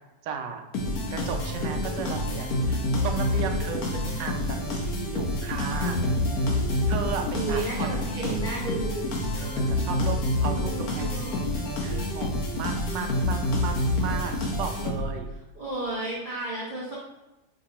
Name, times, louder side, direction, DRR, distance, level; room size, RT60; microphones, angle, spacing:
voice 1, 0.2-0.6 1.1-6.0 6.9-8.6 9.4-15.3, right 6 dB, 85° right, 4 dB, 1.2 m, -35 dB
sound 1, 0.7-15.3, left 1 dB, 65° left, 1.1 m, -27 dB
voice 2, 7.3-9.1 10.5-11.4 15.6-17.0, right 2 dB, 50° right, -7 dB, 0.6 m, -33 dB
5.1 x 2.9 x 2.8 m, 1.0 s
omnidirectional pair, 1.9 m